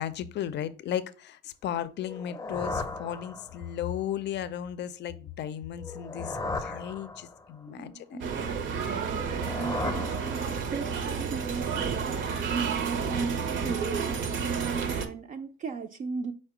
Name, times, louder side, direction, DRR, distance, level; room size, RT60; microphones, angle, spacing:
voice 1, 0.0-8.2, left 10 dB, 60° left, 0.4 m, -35 dB
sound 1, 2.0-3.8 5.8-7.6 9.1-10.9, left 3 dB, 15° left, 0.6 m, -36 dB
voice 2, 7.7-8.6 8.8-16.3, right 5 dB, 40° right, 0.4 m, -37 dB
sound 2, 8.2-15.1, right 6 dB, 70° right, 0.7 m, -31 dB
4.7 x 2.2 x 4.7 m
cardioid pair, 90°, 20 cm